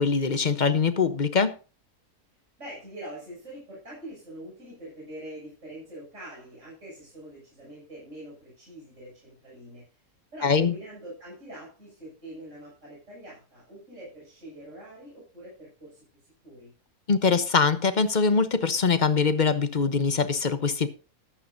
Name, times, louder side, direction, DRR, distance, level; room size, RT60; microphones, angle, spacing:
voice 1, 0.0-1.5 10.4-10.7 17.1-20.9, left 5 dB, 35° left, 0.9 m, -23 dB
voice 2, 2.6-9.8 10.3-16.0 16.4-16.7, right 1 dB, 50° right, 7.8 m, -44 dB
14.5 x 12.0 x 2.7 m
omnidirectional pair, 1.7 m